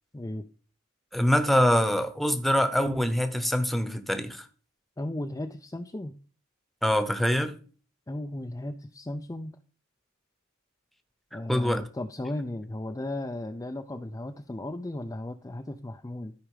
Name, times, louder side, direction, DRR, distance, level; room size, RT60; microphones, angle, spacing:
voice 1, 0.1-0.5 5.0-6.1 8.1-9.6 11.3-16.3, left 1 dB, 15° left, 0.5 m, -35 dB
voice 2, 1.1-4.5 6.8-7.5 11.3-11.8, equal, ahead, 1.0 m, -24 dB
13.5 x 4.9 x 5.0 m
head